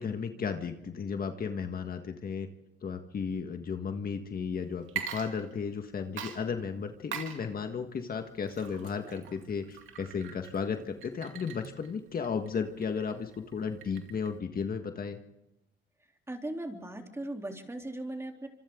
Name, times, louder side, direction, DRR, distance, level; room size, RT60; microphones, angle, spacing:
voice 1, 0.0-2.5 2.8-15.2, left 6 dB, 50° left, 6 dB, 1.7 m, -34 dB
Water / Liquid, 4.8-5.8 6.2-14.4, right 7 dB, 85° right, 2.4 m, -43 dB
voice 2, 16.3-18.5, right 1 dB, 15° right, 2 dB, 3.4 m, -38 dB
26.0 x 26.0 x 3.9 m, 0.97 s
cardioid pair, 90°, 20 cm